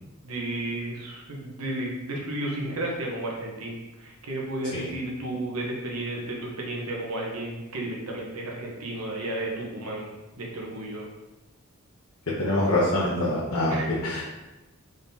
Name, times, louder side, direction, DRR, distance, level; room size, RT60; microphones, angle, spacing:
voice 1, 0.2-10.1 10.4-11.1 13.7-13.9, right 1 dB, 80° right, -2 dB, 0.9 m, -33 dB
voice 2, 12.4-14.2, left 1 dB, 75° left, -7 dB, 0.8 m, -25 dB
3.7 x 3.6 x 2.7 m, 1.1 s
head